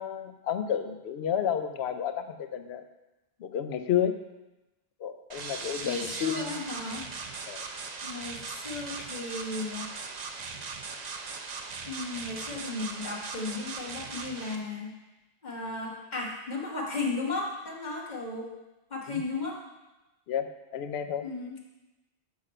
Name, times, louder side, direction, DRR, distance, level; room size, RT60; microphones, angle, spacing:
voice 1, 0.0-2.8 3.4-4.1 5.0-6.6 7.5-7.6 19.1-19.2 20.3-21.2, left 9 dB, 80° left, 8 dB, 0.8 m, -31 dB
sound 1, 5.3-14.6, right 4 dB, 50° right, 0.6 m, -39 dB
voice 2, 5.8-7.1 8.0-9.9 11.9-14.9 15.4-18.5 18.9-19.6 21.2-21.7, left 3 dB, 45° left, -2 dB, 1.4 m, -35 dB
7.2 x 4.9 x 4.3 m, 1.0 s
omnidirectional pair, 1.1 m